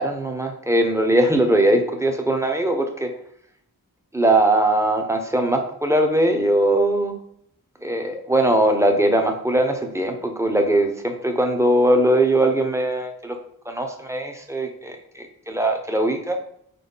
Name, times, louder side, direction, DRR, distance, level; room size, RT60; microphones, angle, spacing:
voice 1, 0.0-3.1 4.1-7.2 7.8-13.4 13.7-16.4, right 1 dB, 5° right, 4 dB, 1.0 m, -20 dB
4.4 x 4.2 x 5.6 m, 0.69 s
wide cardioid pair, 70°, 38 cm